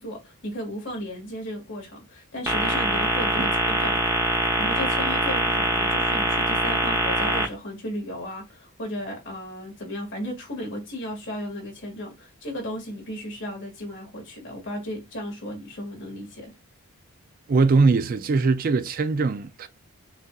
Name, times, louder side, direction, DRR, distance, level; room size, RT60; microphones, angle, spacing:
voice 1, 0.0-4.3 4.6-16.5, equal, 55° left, 1.9 m, -35 dB
sound 1, 2.5-7.4, right 1 dB, 15° right, 0.8 m, -23 dB
voice 2, 17.5-19.7, right 4 dB, 40° right, 0.3 m, -21 dB
6.0 x 2.7 x 2.3 m
head